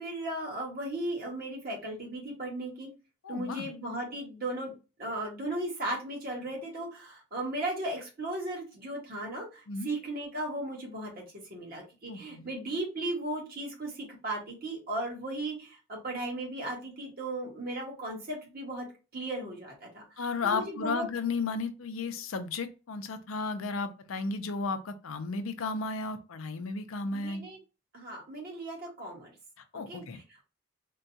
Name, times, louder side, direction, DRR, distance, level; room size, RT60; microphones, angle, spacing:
voice 1, 0.0-2.9 3.3-4.7 5.0-18.9 19.1-20.0 20.4-21.1 27.1-27.6 27.9-29.3 29.9-30.0, right 1 dB, 45° right, 1.4 m, -36 dB
voice 2, 3.2-3.7 9.7-9.9 12.1-12.5 20.2-27.4 29.7-30.2, left 4 dB, 80° left, 0.5 m, -34 dB
3.7 x 2.3 x 2.6 m
head